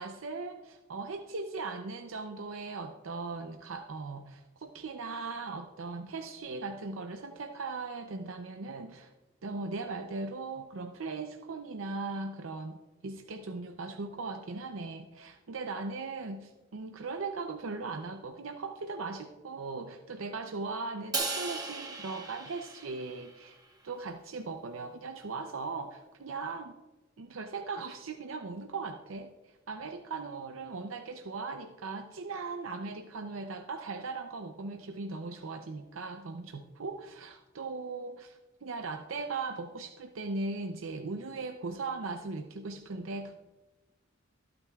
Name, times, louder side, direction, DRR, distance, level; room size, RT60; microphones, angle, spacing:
voice 1, 0.0-9.1 9.4-23.6 23.8-26.8 27.2-29.3 29.7-43.3, right 3 dB, 90° right, 5 dB, 0.6 m, -39 dB
Crash cymbal, 21.1-23.5, right 3 dB, 20° right, 1.1 m, -36 dB
24.5 x 8.8 x 2.4 m, 1.2 s
head